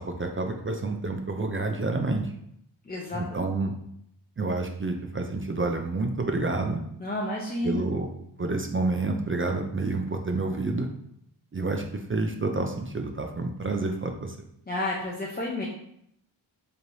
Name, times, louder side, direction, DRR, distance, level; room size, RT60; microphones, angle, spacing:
voice 1, 0.0-2.3 3.1-3.7 4.4-6.8 7.6-8.1 8.4-10.9 11.5-14.4, right 3 dB, 30° right, 4 dB, 0.4 m, -29 dB
voice 2, 2.8-3.5 7.0-7.8 14.7-15.7, left 1 dB, 20° left, -4 dB, 0.7 m, -31 dB
4.2 x 3.2 x 2.7 m, 0.73 s
cardioid pair, 50°, 48 cm